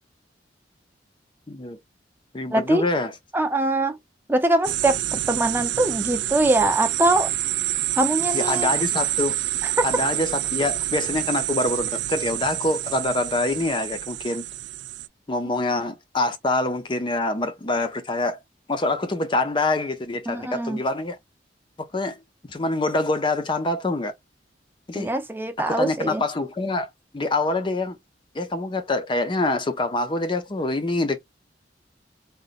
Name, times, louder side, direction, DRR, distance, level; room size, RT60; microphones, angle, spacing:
voice 1, 1.5-1.8 2.3-3.1 8.3-9.4 9.8-14.4 15.3-18.4 18.7-21.2 21.8-22.2 22.5-24.1 24.9-25.1 25.7-26.9 27.1-28.0 28.3-31.2, left 2 dB, 25° left, 0.5 m, -25 dB
voice 2, 2.5-2.8 3.3-4.0 4.3-7.3 8.0-8.7 9.6-9.9 20.3-20.8 24.9-26.2, right 2 dB, 10° right, 0.6 m, -23 dB
sound 1, 4.6-15.1, right 14 dB, 70° right, 0.4 m, -27 dB
3.9 x 2.2 x 3.9 m
head